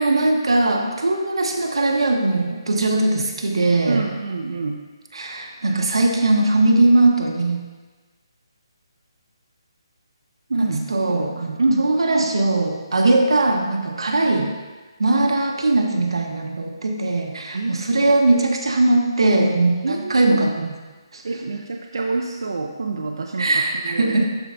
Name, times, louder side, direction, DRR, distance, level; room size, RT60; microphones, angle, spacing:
voice 1, 0.0-4.1 5.1-7.6 10.5-14.6 15.0-20.7 21.1-21.2 23.4-24.3, right 2 dB, 85° right, 2 dB, 1.1 m, -20 dB
voice 2, 3.9-4.8 10.5-10.8 11.6-11.9 17.5-17.8 19.8-20.2 21.2-23.5 23.8-24.2, right 3 dB, 60° right, 1 dB, 0.5 m, -25 dB
12.5 x 4.6 x 2.6 m, 1.3 s
hypercardioid pair, 180°, 3 cm